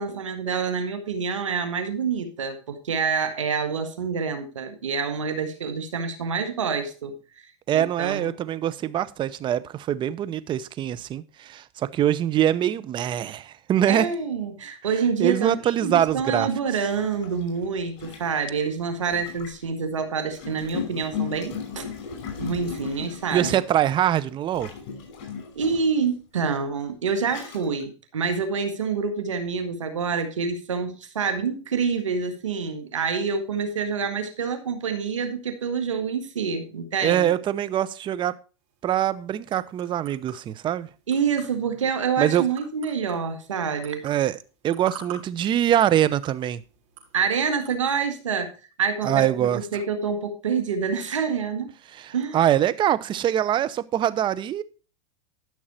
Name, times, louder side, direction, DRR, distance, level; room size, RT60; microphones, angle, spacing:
voice 1, 0.0-7.2 7.7-8.3 13.9-21.9 22.4-23.6 25.6-37.3 41.1-44.0 47.1-48.5 48.8-51.7 52.1-52.4, right 5 dB, 90° right, 1.9 m, -27 dB
voice 2, 7.7-14.1 15.2-16.5 23.3-24.7 37.0-38.3 38.8-40.9 42.2-42.5 44.0-44.4 44.6-46.6 49.0-49.6 51.9-54.6, right 11 dB, 30° right, 0.8 m, -23 dB
Gurgling, 16.1-16.2 16.9-19.7 20.3-23.9 24.5-26.0 26.7-26.8 27.2-27.8, left 7 dB, 50° left, 5.7 m, -36 dB
sound 1, 38.6-48.0, right 7 dB, 45° right, 4.6 m, -47 dB
12.5 x 6.3 x 4.3 m
hypercardioid pair, 110°, 16 cm